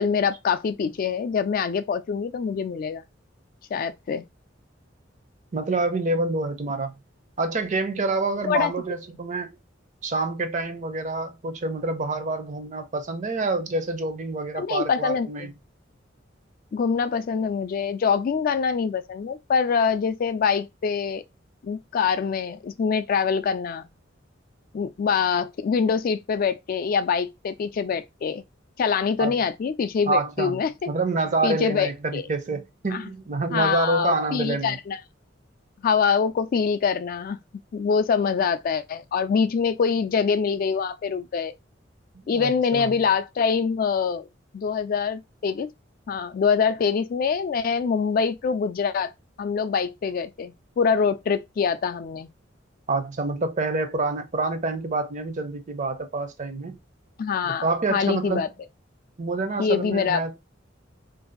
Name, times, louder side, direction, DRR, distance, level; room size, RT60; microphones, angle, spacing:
voice 1, 0.0-3.0 3.7-4.2 8.4-8.7 14.5-15.5 16.7-21.2 21.6-23.8 24.7-28.4 28.8-30.9 31.4-32.3 32.9-33.0 33.5-35.0 35.8-37.4 37.7-41.5 42.3-44.3 44.5-45.7 46.1-49.1 49.4-52.3 57.2-58.5 59.6-60.2, left 6 dB, 50° left, 0.3 m, -24 dB
voice 2, 5.5-6.9 7.4-9.5 10.0-15.5 29.2-29.4 30.1-30.6 30.9-34.8 42.2-42.9 52.9-56.8 57.4-58.4 59.2-60.4, right 3 dB, 40° right, 0.5 m, -27 dB
2.6 x 2.4 x 3.7 m
head